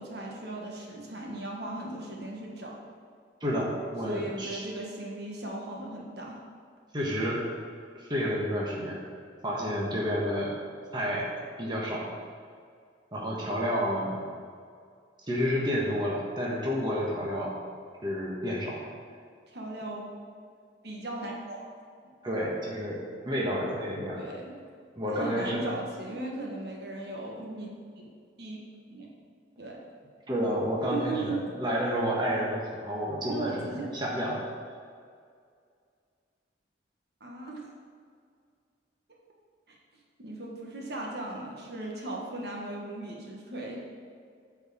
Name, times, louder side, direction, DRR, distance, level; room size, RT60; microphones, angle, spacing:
voice 1, 0.0-2.8 4.0-6.4 19.5-20.1 20.8-21.6 22.0-22.1 24.2-24.6 25.1-27.7 28.0-28.1 28.4-28.6 28.9-29.1 29.6-29.8 30.9-31.5 33.2-33.9 37.2-37.7 39.7-39.8 40.2-43.9, right 2 dB, 60° right, -2 dB, 1.5 m, -37 dB
voice 2, 3.4-4.6 6.9-7.4 7.9-9.0 9.4-10.6 10.9-11.3 11.6-12.1 13.1-14.2 15.2-17.5 18.0-18.8 22.2-24.2 25.0-25.7 30.3-34.4, equal, 25° right, -4 dB, 1.3 m, -30 dB
8.8 x 4.7 x 7.2 m, 2.2 s
head